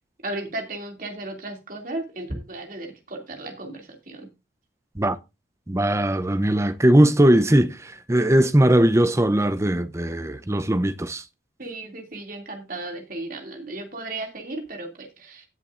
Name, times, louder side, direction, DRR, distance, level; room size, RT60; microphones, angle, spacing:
voice 1, 0.2-4.3 11.6-15.5, right 2 dB, 45° right, 2.5 m, -35 dB
voice 2, 5.7-11.2, right 1 dB, 15° right, 0.6 m, -19 dB
17.5 x 7.1 x 2.5 m
head